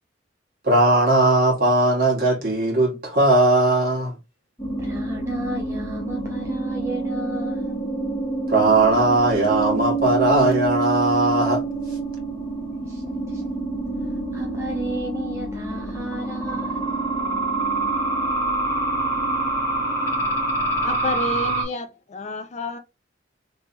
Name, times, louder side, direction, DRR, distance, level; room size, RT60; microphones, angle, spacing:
voice 1, 0.6-4.2 8.5-11.6, right 2 dB, 55° right, 1.8 m, -18 dB
sound 1, 4.6-21.6, right 2 dB, 15° left, 1.3 m, -26 dB
voice 2, 4.8-7.8 12.8-13.5 14.0-16.9, right 2 dB, 15° right, 0.6 m, -34 dB
voice 3, 20.8-22.8, left 2 dB, 40° left, 0.5 m, -30 dB
3.3 x 3.3 x 2.8 m
head